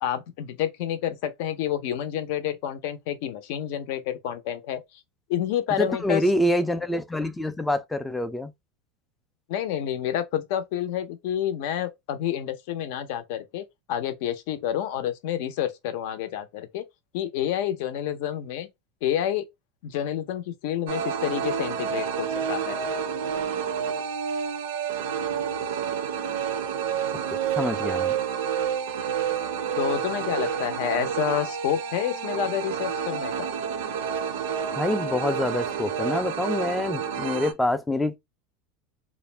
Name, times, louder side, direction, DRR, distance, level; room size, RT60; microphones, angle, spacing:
voice 1, 0.0-4.8 5.3-6.2 9.5-16.8 17.1-18.7 19.0-19.5 19.8-22.8 29.3-29.4 29.8-33.5, left 10 dB, 65° left, 0.5 m, -29 dB
voice 2, 5.8-8.5 27.1-28.2 30.4-30.6 34.8-38.2, left 1 dB, 5° left, 0.3 m, -26 dB
sound 1, 20.9-37.5, right 7 dB, 80° right, 0.4 m, -29 dB
2.4 x 2.0 x 3.2 m
supercardioid pair, 150°, 0 cm